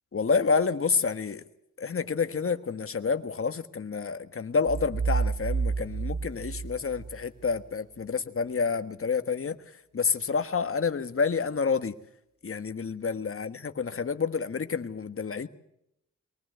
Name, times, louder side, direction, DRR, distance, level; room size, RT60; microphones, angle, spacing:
voice 1, 0.1-1.4 1.8-9.6 9.9-11.9 12.4-15.5, left 5 dB, 45° left, 10 dB, 1.5 m, -29 dB
sound 1, 4.7-7.5, right 5 dB, 55° right, 1.0 m, -30 dB
22.5 x 19.5 x 8.0 m, 0.77 s
wide cardioid pair, 95°, 29 cm